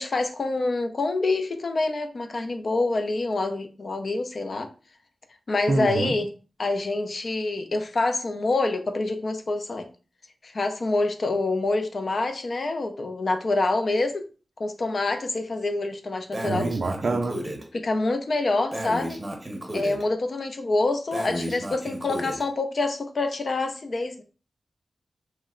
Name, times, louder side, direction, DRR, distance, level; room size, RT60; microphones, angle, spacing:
voice 1, 0.0-4.7 5.5-6.3 6.6-9.9 10.4-14.3 14.6-16.7 17.7-19.2 19.7-24.2, left 2 dB, 55° left, 0.4 m, -26 dB
voice 2, 5.7-6.2 16.4-17.4, right 3 dB, 60° right, 0.4 m, -26 dB
Breathing, 16.3-17.6 18.7-20.0 21.1-22.4, equal, 15° right, 0.7 m, -33 dB
3.0 x 2.0 x 3.6 m
wide cardioid pair, 120°, 0 cm